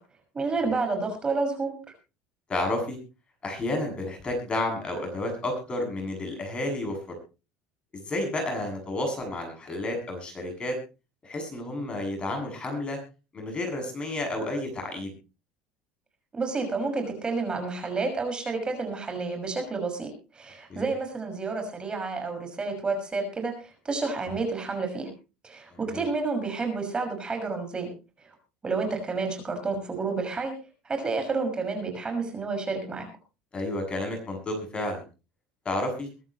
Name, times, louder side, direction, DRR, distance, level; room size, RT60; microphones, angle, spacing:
voice 1, 0.3-1.7 16.3-20.1 20.3-25.1 25.4-27.9 28.6-30.5 30.8-33.1, right 4 dB, 25° right, 5 dB, 6.1 m, -30 dB
voice 2, 2.5-3.0 3.4-7.0 7.9-10.8 11.2-13.0 13.3-15.1 20.7-20.9 25.7-26.0 33.5-35.0 35.6-36.1, left 1 dB, 25° left, 4 dB, 7.5 m, -31 dB
23.5 x 11.5 x 3.1 m, 0.31 s
supercardioid pair, 100°, 4 cm